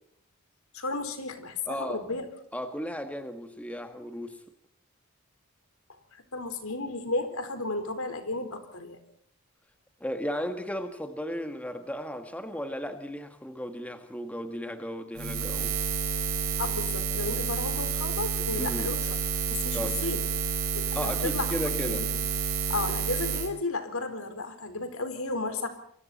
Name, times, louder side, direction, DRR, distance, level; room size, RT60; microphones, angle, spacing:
voice 1, 0.7-2.3 5.9-9.0 16.6-19.2 19.5-20.2 20.7-22.1 22.7-25.7, left 3 dB, 85° left, 8 dB, 4.4 m, -33 dB
voice 2, 1.7-2.0 2.5-4.4 10.0-15.7 18.6-18.9 19.7-20.0 20.9-22.0, equal, 5° left, 7 dB, 1.7 m, -35 dB
Buzz, 15.1-23.5, right 5 dB, 80° right, 4.5 m, -29 dB
28.5 x 24.0 x 4.3 m, 0.65 s
head